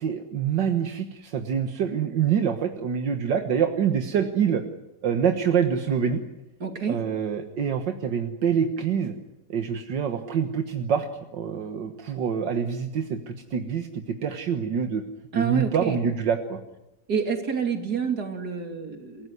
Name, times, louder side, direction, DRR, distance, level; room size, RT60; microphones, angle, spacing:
voice 1, 0.0-4.6 5.0-6.2 6.9-9.2 9.5-11.1 11.3-15.0 15.3-16.6, right 7 dB, 80° right, 6 dB, 2.1 m, -26 dB
voice 2, 6.6-7.0 15.3-16.0 17.1-19.3, right 6 dB, 60° right, 5 dB, 3.3 m, -28 dB
28.0 x 17.0 x 9.5 m, 0.97 s
omnidirectional pair, 1.9 m